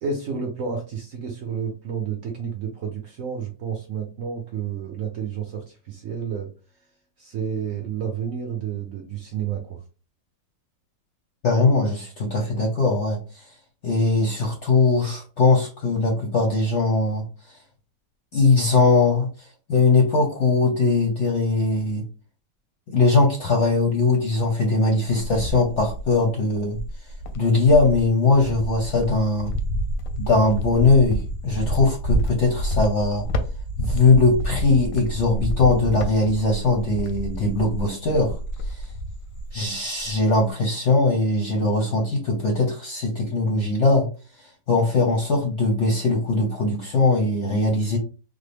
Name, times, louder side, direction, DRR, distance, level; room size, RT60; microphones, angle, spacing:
voice 1, 0.0-6.5 7.2-9.8, right 6 dB, 65° right, 2 dB, 0.8 m, -30 dB
voice 2, 11.4-13.5 13.8-17.6 18.3-22.0 22.9-26.8 27.3-29.5 30.2-33.2 33.8-38.4 38.7-38.9 39.5-44.1 44.4-48.0, left 3 dB, 60° left, 0 dB, 0.8 m, -20 dB
Cricket, 24.8-26.2 26.7-39.7 40.0-40.5, equal, 90° left, 1.3 m, -29 dB
3.6 x 2.0 x 3.3 m, 0.35 s
omnidirectional pair, 1.9 m